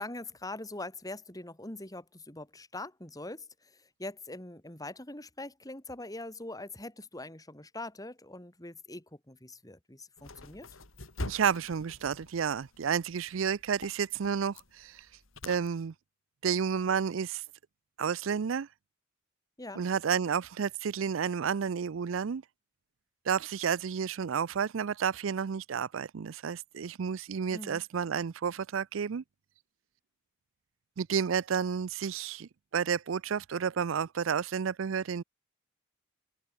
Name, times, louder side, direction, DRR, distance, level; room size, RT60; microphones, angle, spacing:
voice 1, 0.0-10.7 19.6-19.8 27.5-27.8, left 2 dB, 20° left, 4.0 m, -43 dB
sound 1, 10.2-15.7, left 2 dB, 85° left, 3.7 m, -45 dB
voice 2, 11.3-15.1 15.4-15.9 16.4-17.4 18.0-18.7 19.8-22.4 23.3-29.2 31.0-35.2, right 7 dB, 70° right, 0.4 m, -31 dB
head